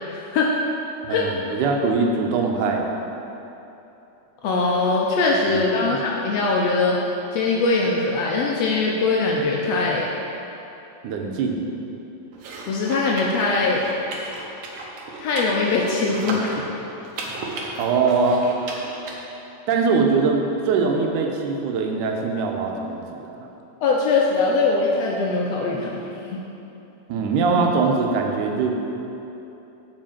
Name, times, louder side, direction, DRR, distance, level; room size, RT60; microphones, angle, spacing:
voice 1, 0.1-0.5 1.1-1.3 4.4-7.0 7.3-10.1 12.7-13.9 14.2-14.3 15.2-16.6 23.8-26.4, left 3 dB, 75° left, -2 dB, 1.5 m, -22 dB
voice 2, 1.0-2.8 5.5-5.6 5.9-6.0 11.0-11.6 17.8-18.5 19.7-23.0 23.4-23.5 27.1-28.8, right 4 dB, 90° right, 2 dB, 2.3 m, -22 dB
sound 1, 12.3-19.2, right 2 dB, 65° right, 1.7 m, -34 dB
7.6 x 5.0 x 7.3 m, 3.0 s
omnidirectional pair, 3.6 m